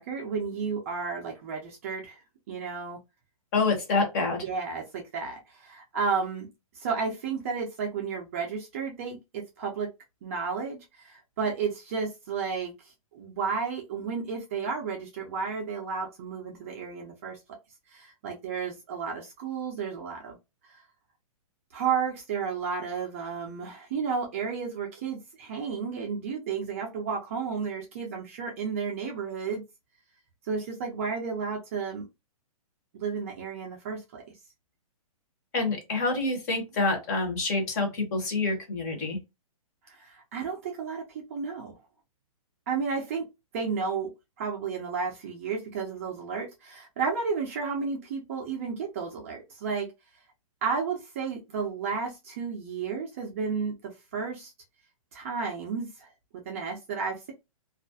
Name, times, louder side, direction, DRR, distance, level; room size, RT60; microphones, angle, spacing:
voice 1, 0.0-2.2 2.5-3.0 4.4-6.5 6.7-9.9 10.2-17.4 17.9-20.4 20.7-20.8 21.7-29.6 30.5-32.1 32.9-34.2 39.9-41.8 42.7-43.2 43.5-44.1 44.4-49.9 50.6-54.5 55.1-56.1 56.5-57.3, right 5 dB, 25° right, 0.4 m, -32 dB
voice 2, 3.5-4.4 35.5-39.2, left 3 dB, 30° left, 0.8 m, -27 dB
2.3 x 2.1 x 2.6 m
hypercardioid pair, 170°, 18 cm